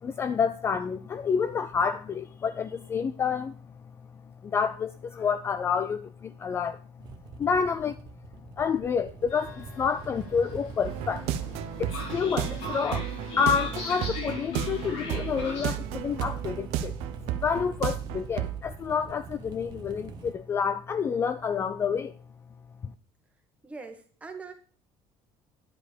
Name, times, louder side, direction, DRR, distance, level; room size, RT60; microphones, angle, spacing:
voice 1, 0.0-3.6 4.4-6.8 7.4-8.0 8.6-11.3 11.8-13.1 13.4-16.9 17.4-22.1, left 6 dB, 25° left, 0.4 m, -28 dB
sound 1, 7.0-15.1 15.7-20.3, right 5 dB, 40° right, 1.0 m, -45 dB
Train, 9.3-15.7, left 3 dB, 85° left, 3.7 m, -39 dB
sound 2, 10.8-18.6, right 11 dB, 80° right, 0.8 m, -33 dB
voice 2, 23.6-24.5, right 4 dB, 10° right, 1.4 m, -42 dB
10.5 x 5.0 x 6.6 m
cardioid pair, 160°, 10 cm